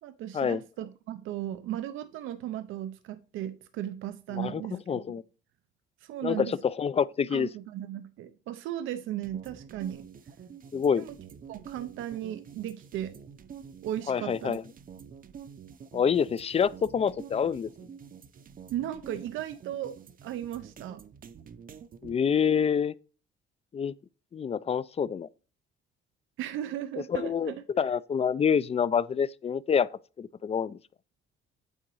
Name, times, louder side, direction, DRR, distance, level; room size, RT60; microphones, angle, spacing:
voice 1, 0.0-5.0 6.0-6.6 7.3-10.1 10.9-11.1 11.5-13.2 13.8-14.6 18.7-19.9 20.2-21.0 26.4-27.6, right 12 dB, 90° right, 0.6 m, -36 dB
voice 2, 4.3-5.2 6.2-7.5 10.7-11.0 14.1-14.6 15.9-17.7 22.0-22.9 23.7-23.9 24.3-25.3 27.1-30.8, left 7 dB, 30° left, 0.4 m, -27 dB
sound 1, 9.2-22.1, right 7 dB, 45° right, 0.7 m, -48 dB
8.8 x 3.8 x 4.7 m
cardioid pair, 90°, 20 cm